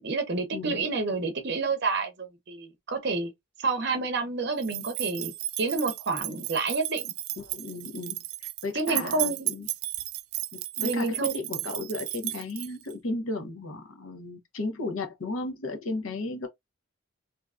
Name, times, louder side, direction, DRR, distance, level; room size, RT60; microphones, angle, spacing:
voice 1, 0.0-3.3 3.6-7.1 8.7-9.5 10.8-11.3, right 3 dB, 55° right, 0.7 m, -29 dB
voice 2, 0.5-0.8 7.4-9.7 10.5-16.5, left 2 dB, 80° left, 0.8 m, -35 dB
sound 1, 4.6-12.9, right 15 dB, 75° right, 0.3 m, -34 dB
2.7 x 2.3 x 2.3 m
head